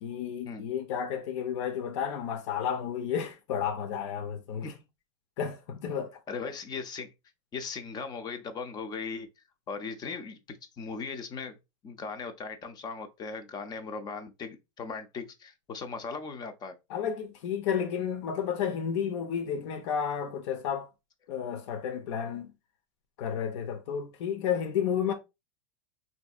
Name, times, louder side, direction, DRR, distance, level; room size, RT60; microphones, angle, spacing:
voice 1, 0.0-4.7 5.4-6.2 16.9-20.9 21.3-22.5 23.2-25.1, left 8 dB, 70° left, 0.7 m, -32 dB
voice 2, 6.3-7.1 7.5-9.3 9.7-11.6 11.8-16.8, left 5 dB, 25° left, 0.6 m, -38 dB
3.4 x 2.7 x 2.3 m
supercardioid pair, 130°, 16 cm